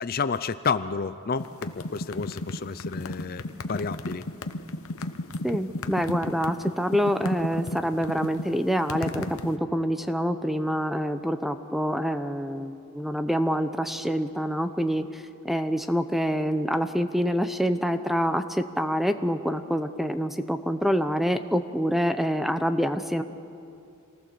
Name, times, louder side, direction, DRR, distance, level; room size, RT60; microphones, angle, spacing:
voice 1, 0.0-3.4 3.7-4.2, left 5 dB, 40° left, 13 dB, 0.5 m, -30 dB
sound 1, 1.4-9.5, left 2 dB, 70° left, 1.0 m, -33 dB
voice 2, 5.4-23.2, equal, ahead, 9 dB, 0.7 m, -26 dB
27.0 x 19.0 x 6.9 m, 2.6 s
head